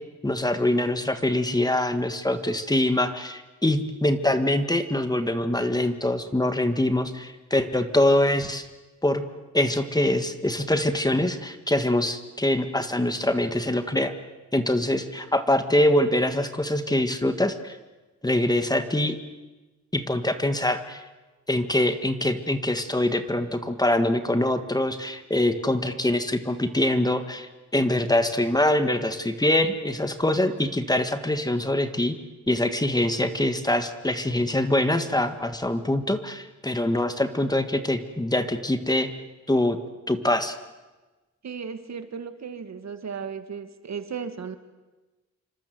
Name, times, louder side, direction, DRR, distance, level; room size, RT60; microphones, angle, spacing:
voice 1, 0.2-8.7 9.0-9.2 9.5-14.1 14.5-17.8 18.2-19.2 19.9-21.0 21.5-32.1 32.5-39.1 39.5-39.8 40.1-40.6, left 1 dB, 15° left, 9 dB, 1.7 m, -24 dB
voice 2, 41.4-44.6, right 6 dB, 65° right, 9 dB, 2.0 m, -35 dB
28.0 x 25.0 x 7.9 m, 1.2 s
wide cardioid pair, 120°, 29 cm